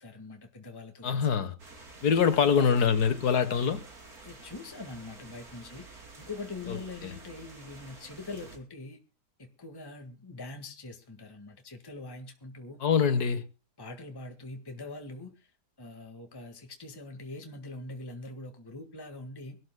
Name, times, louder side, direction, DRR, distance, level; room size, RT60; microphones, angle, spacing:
voice 1, 0.0-1.4 2.2-2.8 4.2-9.0 9.4-12.8 13.8-15.5 15.8-19.6, left 2 dB, 15° left, 1.7 m, -43 dB
voice 2, 1.0-1.6 2.0-3.8 6.7-7.2 12.8-13.4, left 6 dB, 70° left, 1.8 m, -25 dB
sound 1, 1.6-8.6, right 3 dB, 65° right, 3.5 m, -50 dB
24.5 x 13.0 x 2.2 m
omnidirectional pair, 1.7 m